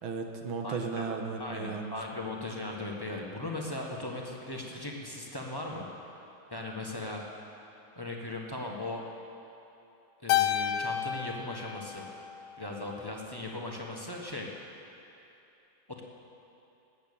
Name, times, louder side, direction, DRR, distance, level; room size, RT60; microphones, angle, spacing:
voice 1, 0.0-1.9, right 5 dB, 75° right, 4 dB, 2.0 m, -35 dB
voice 2, 0.6-1.0 1.4-5.9 6.5-7.2 7.9-9.0 10.2-12.1 12.6-14.5 15.9-16.0, left 2 dB, 15° left, -1 dB, 1.2 m, -38 dB
Keyboard (musical), 10.3-12.8, left 11 dB, 85° left, 1.6 m, -31 dB
19.5 x 8.7 x 7.0 m, 2.8 s
omnidirectional pair, 2.3 m